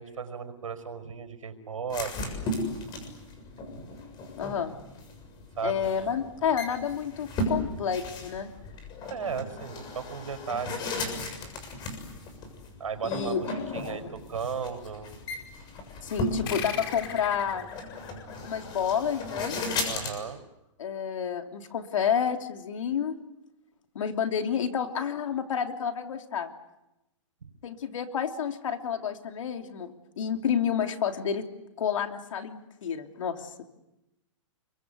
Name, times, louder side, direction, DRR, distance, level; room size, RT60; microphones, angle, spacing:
voice 1, 0.0-2.5 3.0-3.1 3.7-3.8 5.6-5.9 9.1-11.3 12.8-15.1 19.8-20.4 27.4-27.5, right 6 dB, 90° right, 7 dB, 5.4 m, -36 dB
sound 1, 1.9-20.1, left 2 dB, 25° left, 7.0 m, -36 dB
voice 2, 4.4-4.7 5.6-8.5 13.0-13.4 13.9-14.1 16.0-17.7 18.4-19.6 20.8-23.1 23.9-26.5 27.6-31.4 31.8-33.6, left 7 dB, 70° left, 5 dB, 3.1 m, -30 dB
sound 2, 16.5-19.5, left 8 dB, 45° left, 4.1 m, -39 dB
29.5 x 23.0 x 8.2 m, 0.94 s
hypercardioid pair, 145°, 17 cm